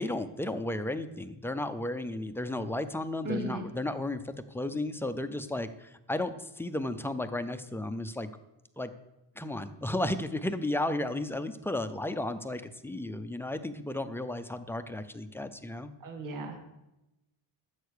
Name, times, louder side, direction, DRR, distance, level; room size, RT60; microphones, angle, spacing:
voice 1, 0.0-8.3 8.8-8.9 9.4-15.9, left 1 dB, 5° left, 10 dB, 0.3 m, -34 dB
voice 2, 3.2-3.7 16.0-16.6, right 1 dB, 40° right, 3 dB, 1.9 m, -36 dB
13.0 x 7.9 x 6.5 m, 0.94 s
cardioid pair, 175°, 48 cm